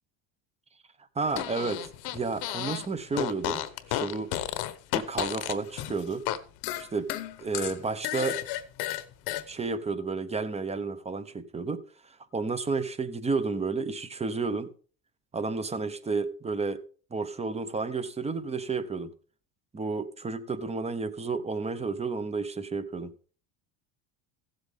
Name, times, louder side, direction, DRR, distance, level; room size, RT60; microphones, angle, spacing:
voice 1, 1.1-1.8 2.1-3.6 3.9-4.3 4.9-6.2 6.8-7.1 7.4-8.4 9.5-14.7 15.3-16.8 17.1-19.1 19.7-23.1, right 4 dB, 15° right, 1.0 m, -31 dB
Fart, 1.3-2.9 3.1-6.4 6.6-9.4, left 14 dB, 70° left, 1.1 m, -32 dB
15.5 x 7.9 x 3.6 m
cardioid pair, 115°, 40 cm